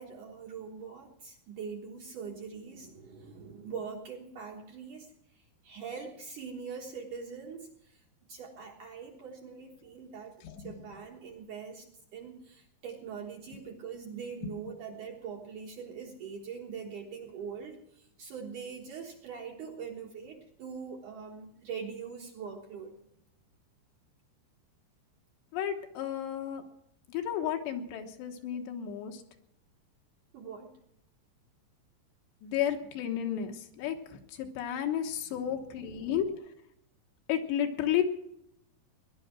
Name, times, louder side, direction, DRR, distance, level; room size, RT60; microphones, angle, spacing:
voice 1, 0.0-23.0 30.3-30.8 35.3-36.2, right 6 dB, 60° right, 0 dB, 2.3 m, -43 dB
voice 2, 25.5-26.6 27.1-29.2 32.4-36.4 37.3-38.0, left 10 dB, 75° left, 5 dB, 3.3 m, -32 dB
18.5 x 11.0 x 6.0 m, 0.79 s
omnidirectional pair, 5.2 m